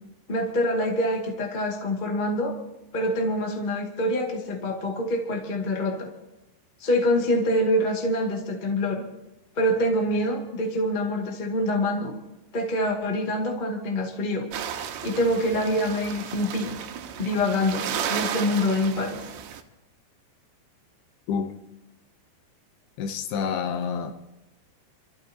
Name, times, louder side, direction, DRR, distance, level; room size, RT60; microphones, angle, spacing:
voice 1, 0.3-2.5 2.9-6.1 6.8-9.0 9.5-12.1 12.5-14.5 15.0-16.7 17.2-19.2, left 1 dB, 25° left, 0 dB, 1.1 m, -25 dB
sound 1, 14.5-19.6, right 8 dB, 80° right, 2.8 m, -33 dB
voice 2, 23.0-24.1, left 6 dB, 75° left, 7 dB, 2.7 m, -28 dB
28.5 x 14.0 x 2.9 m, 0.96 s
omnidirectional pair, 4.7 m